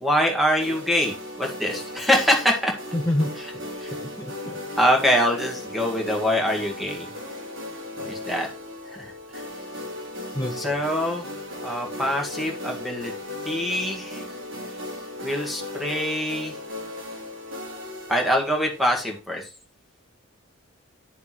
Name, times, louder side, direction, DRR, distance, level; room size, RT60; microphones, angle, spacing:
voice 1, 0.0-2.7 3.4-3.5 3.8-3.9 4.8-7.1 8.0-8.5 8.9-9.4 10.5-11.3 11.6-13.1 13.5-14.3 15.2-16.6 18.1-19.5, equal, ahead, 0 dB, 1.8 m, -24 dB
sound 1, 0.6-19.2, left 1 dB, 70° right, 5.4 m, -36 dB
voice 2, 2.9-3.6 3.9-4.6 10.3-10.7, left 1 dB, 15° left, 1 dB, 0.9 m, -28 dB
10.0 x 6.8 x 3.1 m, 0.33 s
head